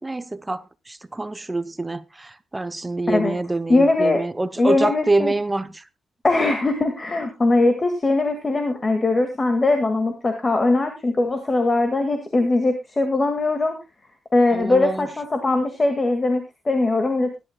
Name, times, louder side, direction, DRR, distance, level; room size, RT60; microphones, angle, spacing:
voice 1, 0.0-5.8 14.5-15.1, right 2 dB, 15° right, 0.7 m, -26 dB
voice 2, 3.7-4.2 4.6-5.3 6.2-13.8 14.3-17.4, left 2 dB, 25° left, 1.8 m, -20 dB
20.5 x 11.5 x 2.2 m
cardioid pair, 120°, 0 cm